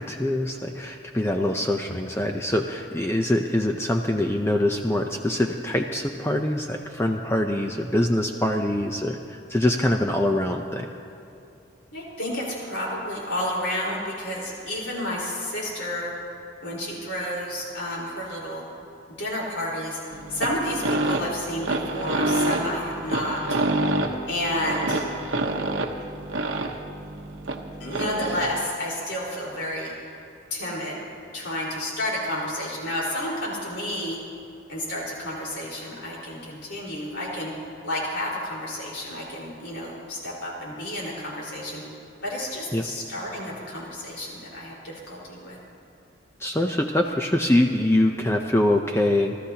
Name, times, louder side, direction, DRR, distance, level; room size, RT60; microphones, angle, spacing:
voice 1, 0.0-10.9 42.7-42.8 46.4-49.4, left 1 dB, 15° left, 3 dB, 0.5 m, -24 dB
voice 2, 11.9-16.1 16.6-18.6 19.2-20.0 20.3-23.6 24.3-25.0 27.8-29.9 30.5-31.0 31.3-34.2 34.7-37.5 37.8-41.8 42.2-45.6, left 1 dB, 75° left, -4 dB, 4.5 m, -30 dB
sound 1, 20.1-28.6, right 2 dB, 90° right, 1.0 m, -27 dB
29.0 x 13.5 x 2.9 m, 2.7 s
head